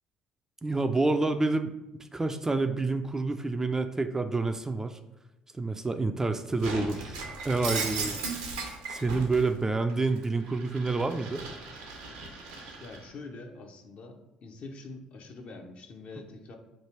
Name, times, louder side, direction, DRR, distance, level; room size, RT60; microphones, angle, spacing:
voice 1, 0.6-1.7 2.0-5.0 5.5-7.2 7.4-8.2 8.9-11.4, right 3 dB, 15° right, 8 dB, 0.3 m, -28 dB
Shatter, 6.6-9.5 9.9-13.0, right 4 dB, 80° right, 0.7 m, -37 dB
voice 2, 12.8-16.6, left 3 dB, 50° left, 3 dB, 0.6 m, -45 dB
3.2 x 2.4 x 4.4 m, 0.98 s
hypercardioid pair, 55°, 3 cm